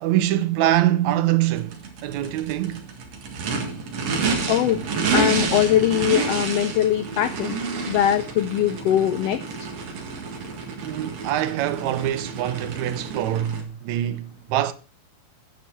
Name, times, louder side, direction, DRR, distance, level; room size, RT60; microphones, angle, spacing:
voice 1, 0.0-2.9 10.8-14.7, right 13 dB, 75° right, 1.9 m, -24 dB
Race car auto racing / Idling / Accelerating revving vroom, 1.6-13.6, right 4 dB, 60° right, 2.7 m, -29 dB
voice 2, 4.5-4.8 5.1-7.6 7.9-9.7, left 11 dB, 85° left, 1.4 m, -21 dB
9.4 x 9.2 x 4.4 m
omnidirectional pair, 3.4 m